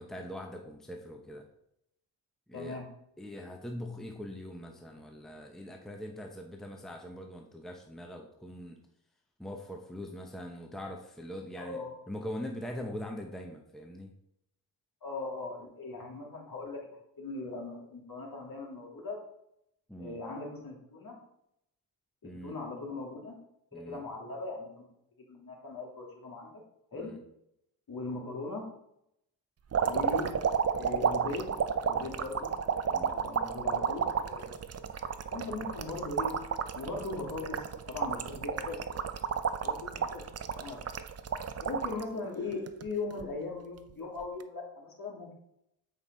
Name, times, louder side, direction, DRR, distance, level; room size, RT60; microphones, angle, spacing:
voice 1, 0.0-1.5 2.5-2.8 3.2-8.8 9.4-11.8 12.1-14.1 19.9-20.2 22.2-22.6 23.7-24.0 26.9-27.2 32.9-33.1 40.0-40.1, left 1 dB, ahead, 2 dB, 0.9 m, -42 dB
voice 2, 2.5-2.8 11.6-12.0 15.0-16.9 17.2-19.2 20.0-21.2 22.2-23.3 23.7-24.9 25.3-26.6 26.9-27.1 27.9-28.6 29.8-30.3 30.7-31.5 31.8-32.5 33.1-34.4 35.3-36.3 36.7-38.8 39.6-40.2 40.5-40.8 41.6-45.3, left 3 dB, 50° left, -1 dB, 2.9 m, -39 dB
sound 1, 29.7-42.0 42.5-43.3 44.2-44.4, right 7 dB, 35° right, 0.6 m, -32 dB
8.1 x 5.5 x 4.0 m, 0.78 s
cardioid pair, 85°, 44 cm